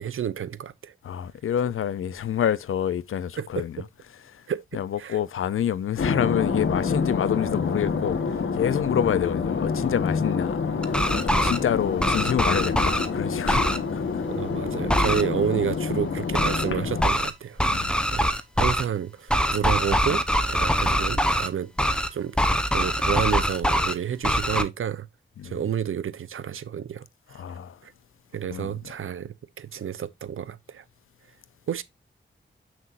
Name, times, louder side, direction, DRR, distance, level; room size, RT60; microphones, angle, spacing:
voice 1, 0.0-0.9 3.4-3.6 4.5-4.6 5.0-5.2 14.3-18.3 18.6-20.2 20.5-21.7 22.1-25.1 25.4-27.1 27.5-27.6 27.8-27.9 28.3-30.8 31.7-31.8, right 8 dB, 80° right, 0.6 m, -30 dB
voice 2, 1.0-3.8 4.3-4.4 4.7-8.2 8.5-14.3 17.6-18.0 25.4-25.6 27.3-27.8 28.5-28.7, left 9 dB, 90° left, 0.5 m, -28 dB
sound 1, 6.0-17.0, left 5 dB, 70° left, 1.2 m, -27 dB
sound 2, 10.8-11.6 12.0-13.1 13.5-13.8 14.9-15.2 16.3-16.6 17.0-17.3 17.6-18.8 19.3-21.5 21.8-22.1 22.4-23.9 24.2-24.6, equal, 5° left, 0.8 m, -23 dB
7.4 x 6.1 x 2.5 m
wide cardioid pair, 85°, 21 cm